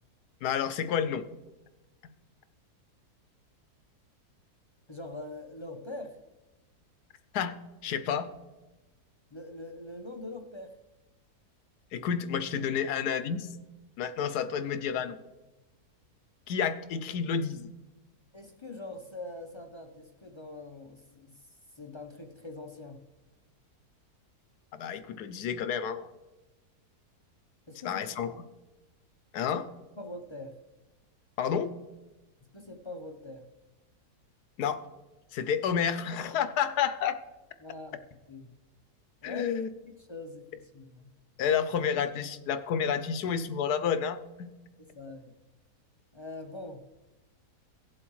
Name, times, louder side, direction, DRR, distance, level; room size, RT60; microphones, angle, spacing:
voice 1, 0.4-1.2 7.3-7.6 7.8-8.3 11.9-13.5 14.0-15.2 16.5-17.7 24.7-26.1 27.8-28.3 29.3-29.7 31.4-31.7 34.6-34.8 35.3-37.2 39.2-39.7 41.4-44.5, left 7 dB, 80° left, 12 dB, 1.2 m, -30 dB
voice 2, 4.9-6.2 9.3-10.8 18.3-23.0 27.7-28.4 30.0-30.6 32.5-33.5 37.6-38.0 38.3-38.5 39.2-39.5 39.8-41.1 44.8-45.3 46.1-46.8, left 2 dB, 35° left, 4 dB, 0.4 m, -43 dB
17.5 x 7.6 x 3.1 m, 1.1 s
omnidirectional pair, 1.7 m